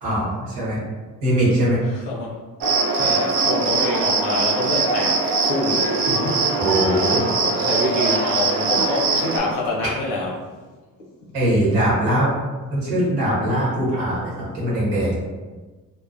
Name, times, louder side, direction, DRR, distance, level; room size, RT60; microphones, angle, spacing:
voice 1, 0.0-0.8 1.2-1.8 6.6-7.3 11.3-12.3 12.7-15.2, right 1 dB, 90° right, -7 dB, 1.1 m, -21 dB
voice 2, 1.8-2.4 2.9-6.5 6.9-10.3 11.0-11.3, left 2 dB, 85° left, -2 dB, 0.7 m, -27 dB
Cricket, 2.6-9.4, right 3 dB, 55° right, 0.6 m, -21 dB
2.6 x 2.0 x 2.4 m, 1.3 s
hypercardioid pair, 50°, 42 cm